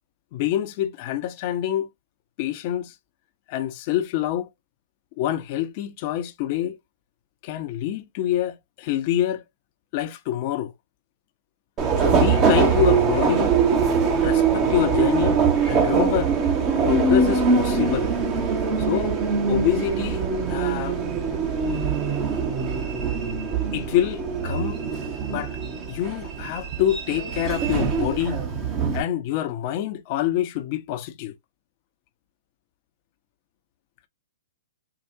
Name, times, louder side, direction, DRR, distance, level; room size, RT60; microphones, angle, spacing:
voice 1, 0.3-1.9 2.4-2.9 3.5-4.5 5.2-6.8 7.4-9.4 9.9-10.7 12.0-13.6 14.2-15.4 15.7-16.3 16.8-18.1 18.8-19.2 19.5-21.0 23.7-24.8 25.3-25.6 25.9-28.4 28.9-31.3, left 12 dB, 40° left, 0.7 m, -26 dB
Subway metro underground, 11.8-29.0, right 5 dB, 25° right, 1.1 m, -23 dB
4.7 x 2.3 x 2.7 m
hypercardioid pair, 140°, 0 cm